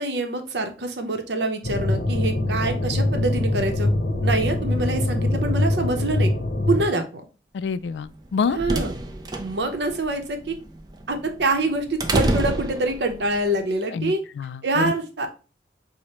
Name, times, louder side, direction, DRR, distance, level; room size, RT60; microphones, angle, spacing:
voice 1, 0.0-3.9 4.2-6.3 6.7-7.2 8.5-8.9 9.4-10.6 11.1-14.2 14.6-15.3, right 2 dB, 80° right, 0.7 m, -25 dB
sound 1, 1.6-6.8, left 1 dB, 65° left, 0.7 m, -23 dB
voice 2, 7.5-8.6 13.9-14.9, left 5 dB, 85° left, 0.3 m, -27 dB
sound 2, 8.1-13.4, right 2 dB, 25° right, 0.4 m, -28 dB
4.8 x 2.1 x 4.1 m
head